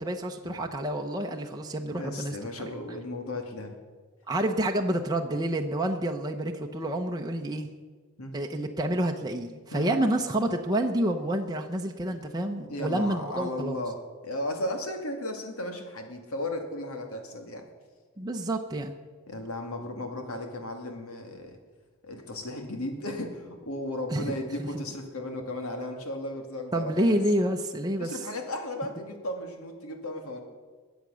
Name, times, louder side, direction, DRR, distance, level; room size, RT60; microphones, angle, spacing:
voice 1, 0.0-2.4 4.3-7.7 8.3-13.8 18.2-18.9 24.1-24.8 26.7-28.2, right 1 dB, 20° right, 2 dB, 0.8 m, -28 dB
voice 2, 1.9-3.8 8.2-8.3 9.7-10.0 12.1-12.2 12.7-17.7 19.3-21.6 22.0-27.1 28.0-30.4, left 1 dB, 80° left, 4 dB, 2.3 m, -35 dB
22.0 x 8.1 x 6.3 m, 1.5 s
head